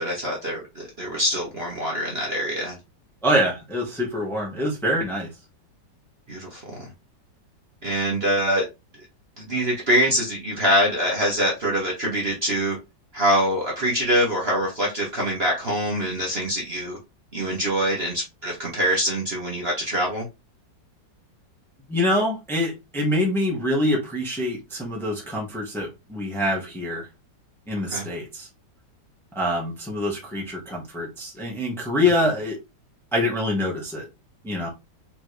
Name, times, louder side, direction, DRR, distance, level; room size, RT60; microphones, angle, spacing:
voice 1, 0.0-2.8 6.3-6.9 7.8-8.6 9.4-12.8 13.1-17.0 17.3-20.2 27.9-28.0, equal, 40° right, 1.2 m, -24 dB
voice 2, 3.2-5.3 21.9-27.1 27.7-28.5 29.3-32.6 33.1-34.1 34.4-34.7, left 1 dB, ahead, 1.2 m, -25 dB
4.4 x 3.4 x 3.2 m
omnidirectional pair, 2.0 m